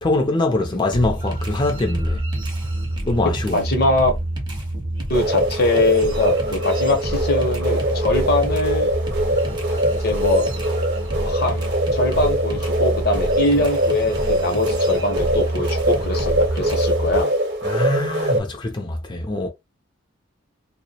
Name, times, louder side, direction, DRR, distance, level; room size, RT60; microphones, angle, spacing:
voice 1, 0.0-2.2 3.1-3.6 17.6-19.5, left 2 dB, 20° left, 0.5 m, -23 dB
sound 1, 0.9-17.2, right 1 dB, 20° right, 0.6 m, -27 dB
voice 2, 3.5-4.1 5.1-8.9 10.0-10.5 11.2-11.6 11.9-17.3, left 2 dB, 50° left, 0.8 m, -22 dB
sound 2, 5.1-18.4, right 1 dB, 55° right, 0.8 m, -23 dB
2.2 x 2.1 x 2.7 m
head